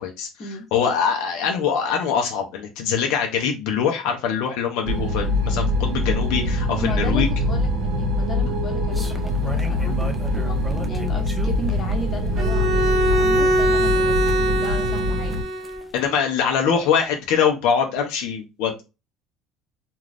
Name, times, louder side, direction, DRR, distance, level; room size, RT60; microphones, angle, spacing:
voice 1, 0.7-7.3 15.9-18.8, left 7 dB, 80° left, 3 dB, 0.6 m, -23 dB
sound 1, 4.8-15.4, left 1 dB, 65° right, 0.9 m, -23 dB
voice 2, 6.8-7.7 8.0-14.1 14.5-15.5, left 3 dB, 40° left, 3 dB, 0.9 m, -34 dB
sound 2, 8.9-16.0, right 1 dB, 5° right, 0.5 m, -37 dB
Bowed string instrument, 12.4-15.9, right 1 dB, 45° right, 0.6 m, -22 dB
2.5 x 2.3 x 3.2 m, 0.27 s
supercardioid pair, 110°, 0 cm